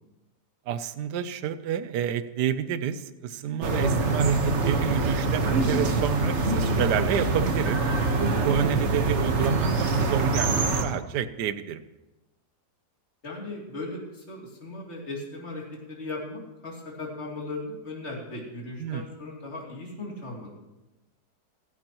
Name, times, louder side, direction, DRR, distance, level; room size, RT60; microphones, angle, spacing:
voice 1, 0.7-7.8 8.4-11.8 18.8-19.1, right 8 dB, 80° right, 12 dB, 1.3 m, -29 dB
sound 1, 3.6-10.8, right 3 dB, 45° right, 1.5 m, -25 dB
voice 2, 13.2-20.5, left 2 dB, 40° left, -3 dB, 3.1 m, -37 dB
27.5 x 11.0 x 3.0 m, 1.0 s
omnidirectional pair, 1.8 m